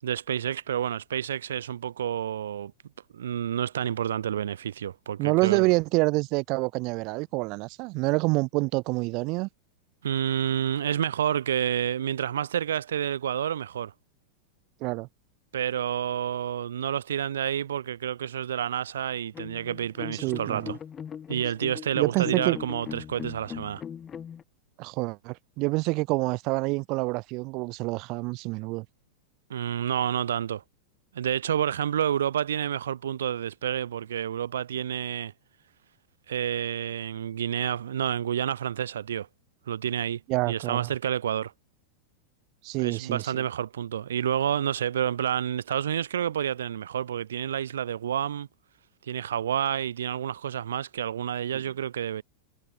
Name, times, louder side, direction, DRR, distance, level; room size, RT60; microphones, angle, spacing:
voice 1, 0.0-2.7 3.1-5.7 10.0-13.9 15.5-20.8 21.3-23.8 29.5-30.6 31.1-35.3 36.3-39.3 39.7-40.2 40.5-41.5 42.8-48.5 49.1-52.2, right 9 dB, 90° right, 7.8 m, -29 dB
voice 2, 5.2-9.5 14.8-15.1 20.2-20.8 21.9-22.6 24.8-28.9 40.3-40.9 42.6-43.4 51.5-51.6, right 25 dB, 45° right, 3.8 m, -27 dB
sound 1, 19.3-24.4, left 8 dB, 25° left, 6.6 m, -39 dB
hypercardioid pair, 125°, 0 cm